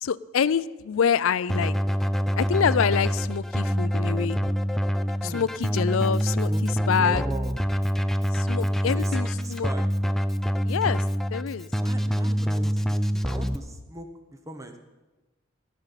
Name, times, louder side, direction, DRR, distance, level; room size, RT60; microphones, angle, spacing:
voice 1, 0.0-1.7 2.4-4.5 5.2-7.2 8.3-9.7 10.6-11.0 11.3-11.7, left 7 dB, 75° left, 18 dB, 0.4 m, -26 dB
Keyboard (musical), 1.5-13.6, equal, ahead, 0.3 m, -26 dB
voice 2, 6.5-7.6 8.6-9.9 11.8-14.8, right 2 dB, 15° right, 6 dB, 1.0 m, -40 dB
15.5 x 5.6 x 9.0 m, 1.1 s
head